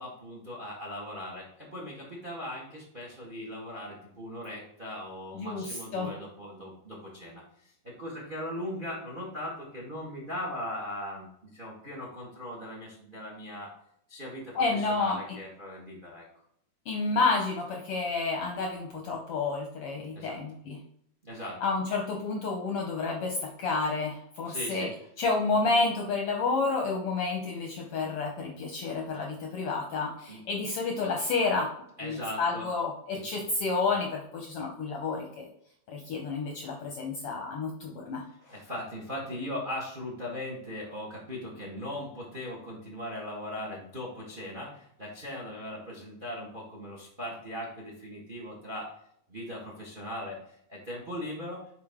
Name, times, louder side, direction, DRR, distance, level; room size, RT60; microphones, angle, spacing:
voice 1, 0.0-13.7 14.1-16.2 20.1-20.4 21.2-21.6 24.4-24.9 30.3-30.4 32.0-32.7 33.1-33.2 38.4-48.9 49.3-51.6, left 1 dB, 50° right, -3 dB, 0.5 m, -39 dB
voice 2, 5.3-6.1 14.5-15.4 16.9-20.8 21.6-24.9 25.2-31.7 32.0-35.5 35.9-38.2, left 3 dB, 70° left, 1 dB, 1.4 m, -30 dB
6.8 x 4.8 x 3.5 m, 0.71 s
omnidirectional pair, 3.5 m